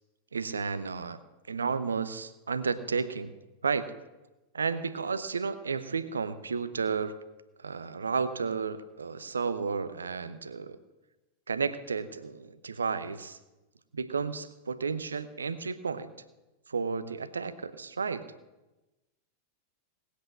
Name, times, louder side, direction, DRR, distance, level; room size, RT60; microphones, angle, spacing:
voice 1, 0.3-1.2 1.5-3.3 3.6-3.9 4.5-7.2 7.6-10.8 11.5-13.4 13.9-16.1 16.7-18.2, right 5 dB, 75° right, 12 dB, 0.8 m, -32 dB
19.5 x 8.3 x 6.3 m, 1.1 s
figure-of-eight pair, 90°, 0 cm